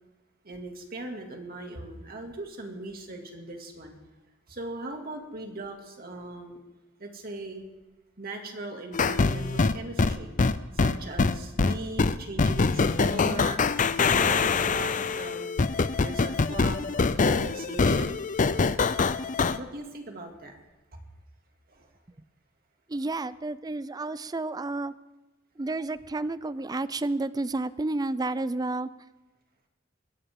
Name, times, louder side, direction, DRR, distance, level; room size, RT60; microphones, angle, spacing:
voice 1, 0.4-4.1 4.5-6.6 7.0-7.6 8.2-10.3 10.7-13.8 14.1-15.6 16.0-18.2 19.5-20.6 20.9-21.0 21.7-21.9, right 2 dB, 50° right, 3 dB, 2.4 m, -39 dB
sound 1, 8.9-19.6, left 4 dB, 40° left, 0.5 m, -24 dB
voice 2, 22.9-24.9 25.6-28.9, right 2 dB, 20° right, 16 dB, 0.4 m, -31 dB
22.0 x 15.5 x 3.7 m, 1.1 s
head